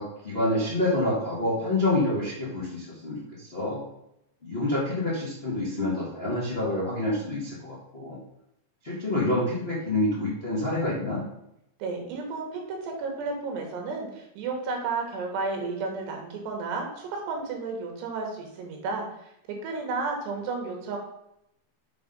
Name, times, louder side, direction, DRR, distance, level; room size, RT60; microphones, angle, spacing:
voice 1, 0.0-3.8 4.4-8.2 8.8-11.2, left 1 dB, 50° left, -7 dB, 0.7 m, -27 dB
voice 2, 11.8-19.1 19.6-21.0, right 4 dB, 90° right, 2 dB, 3.6 m, -32 dB
7.7 x 3.7 x 5.3 m, 0.80 s
omnidirectional pair, 4.7 m